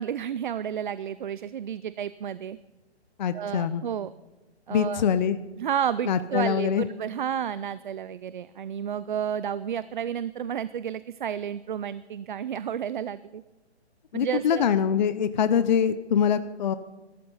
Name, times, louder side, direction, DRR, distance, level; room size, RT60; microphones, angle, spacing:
voice 1, 0.0-2.6 3.3-4.1 4.7-5.0 5.6-13.4 14.1-14.7, right 9 dB, 45° right, 16 dB, 0.4 m, -31 dB
voice 2, 3.2-3.8 4.7-5.4 6.1-6.9 14.1-16.7, left 8 dB, 40° left, 12 dB, 0.6 m, -24 dB
20.0 x 13.0 x 5.5 m, 1.1 s
hypercardioid pair, 155°, 34 cm